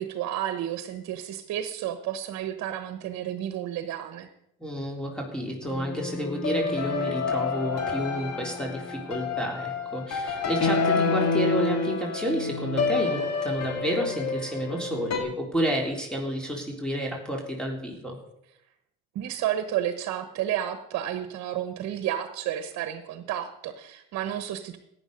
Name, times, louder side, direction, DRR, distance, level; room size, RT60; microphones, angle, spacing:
voice 1, 0.0-4.3 19.1-24.8, right 11 dB, 70° right, 10 dB, 1.1 m, -31 dB
voice 2, 4.6-18.2, equal, 5° left, 0 dB, 3.4 m, -30 dB
sound 1, 5.6-15.2, left 4 dB, 60° left, 2.2 m, -28 dB
14.5 x 9.8 x 5.3 m, 0.79 s
supercardioid pair, 70°, 29 cm